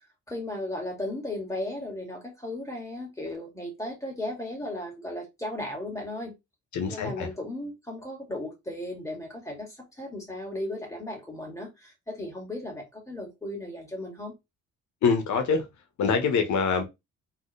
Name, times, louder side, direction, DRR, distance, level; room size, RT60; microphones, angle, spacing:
voice 1, 0.3-6.3 6.9-14.3, left 1 dB, 10° left, 2.4 m, -36 dB
voice 2, 6.7-7.3 15.0-15.7 16.0-16.8, left 5 dB, 70° left, 1.4 m, -24 dB
4.2 x 3.4 x 3.3 m
cardioid pair, 90°, 30 cm